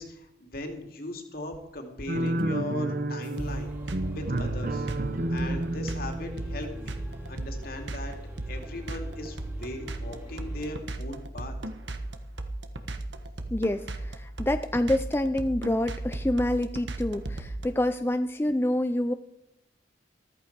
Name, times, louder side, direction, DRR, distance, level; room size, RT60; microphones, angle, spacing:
voice 1, 0.0-3.8 4.1-4.9 5.3-7.0 7.3-8.2 8.5-11.5, left 1 dB, 55° left, 4 dB, 2.5 m, -38 dB
sound 1, 2.1-7.4, right 1 dB, 50° right, 0.8 m, -31 dB
sound 2, 3.3-10.8, equal, 10° right, 2.5 m, -45 dB
sound 3, 3.4-17.7, right 2 dB, 75° right, 1.3 m, -35 dB
voice 2, 13.5-19.1, left 1 dB, 15° left, 9 dB, 0.4 m, -27 dB
14.5 x 14.0 x 4.7 m, 0.83 s
head